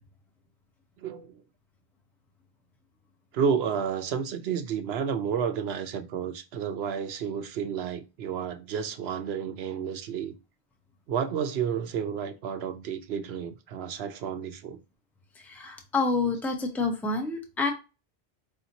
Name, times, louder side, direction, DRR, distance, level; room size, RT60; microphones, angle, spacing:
voice 1, 1.0-1.3 3.3-10.3 11.1-14.8, right 7 dB, 75° right, 0.8 m, -31 dB
voice 2, 15.4-17.7, left 3 dB, ahead, 0.6 m, -28 dB
5.0 x 2.8 x 2.7 m
omnidirectional pair, 1.1 m